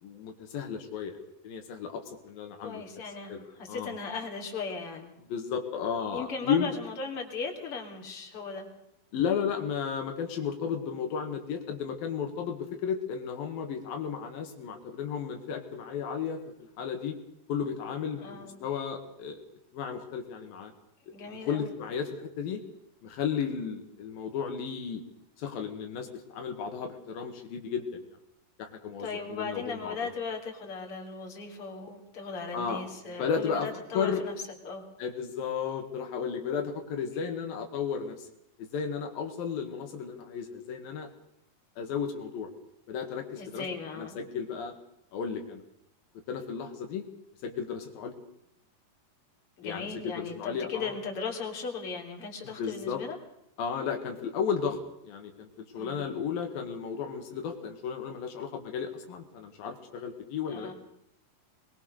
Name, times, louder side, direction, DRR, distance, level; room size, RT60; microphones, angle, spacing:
voice 1, 0.0-1.2 1.4-2.8 3.3-4.0 5.3-6.7 9.1-17.2 17.5-19.4 19.7-20.7 21.2-22.6 23.0-25.0 25.4-28.1 28.6-30.1 32.5-32.8 33.2-33.7 33.9-34.2 35.0-38.3 38.6-41.1 41.8-42.5 42.9-43.7 44.0-44.7 45.1-45.6 46.3-47.0 47.4-48.2 49.6-51.0 52.4-53.0 53.6-60.7, left 7 dB, 80° left, 4 dB, 3.6 m, -34 dB
voice 2, 2.6-5.1 6.1-8.7 18.2-18.6 21.1-21.7 29.0-34.4 34.6-34.8 43.4-44.2 49.6-53.2 55.7-56.1 60.5-60.7, left 4 dB, 40° left, 2 dB, 4.0 m, -37 dB
22.0 x 21.5 x 6.5 m, 0.78 s
omnidirectional pair, 4.1 m